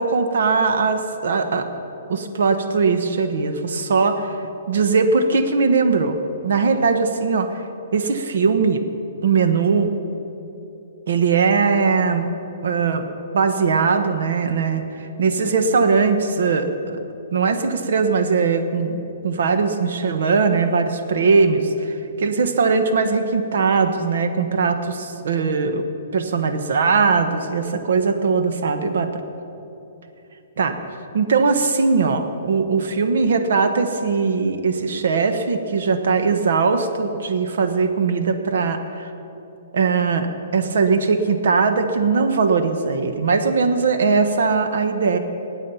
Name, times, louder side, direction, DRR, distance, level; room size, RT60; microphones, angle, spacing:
voice 1, 0.0-1.7 2.1-4.4 4.7-6.2 6.4-7.6 7.9-8.8 9.2-9.9 11.1-12.3 12.6-13.0 13.3-17.0 17.3-25.8 26.1-29.2 30.6-30.8 31.1-39.1 39.7-45.2, right 4 dB, 65° right, 7 dB, 1.2 m, -20 dB
19.5 x 8.7 x 5.7 m, 2.9 s
hypercardioid pair, 175°, 0 cm